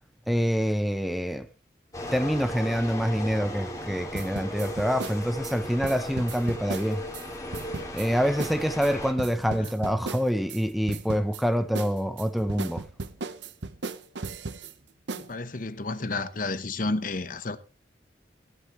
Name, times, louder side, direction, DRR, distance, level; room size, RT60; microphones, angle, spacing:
voice 1, 0.3-1.5 2.1-7.0 7.9-12.8, equal, ahead, 0.6 m, -26 dB
sound 1, 1.9-9.1, left 1 dB, 20° left, 2.4 m, -36 dB
sound 2, 4.1-7.3 7.5-8.1 8.4-8.6 8.8-10.6 10.9-11.4 11.7-14.7 15.1-15.3, right 3 dB, 70° right, 0.9 m, -36 dB
voice 2, 15.1-17.6, left 3 dB, 45° left, 0.9 m, -31 dB
16.0 x 11.5 x 3.1 m
head